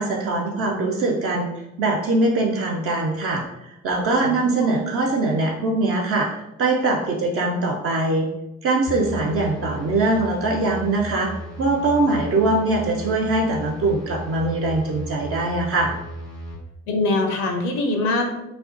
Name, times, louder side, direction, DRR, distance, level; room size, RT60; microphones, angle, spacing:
voice 1, 0.0-1.5 1.8-8.3 8.6-11.3 11.6-16.0, right 2 dB, 40° right, 0 dB, 0.4 m, -22 dB
voice 2, 4.2-4.8 16.9-18.3, left 2 dB, 65° left, 3 dB, 0.5 m, -23 dB
sound 1, 8.9-16.5, equal, 90° left, 1.0 m, -35 dB
2.4 x 2.1 x 2.4 m, 0.90 s
figure-of-eight pair, 40°, 39 cm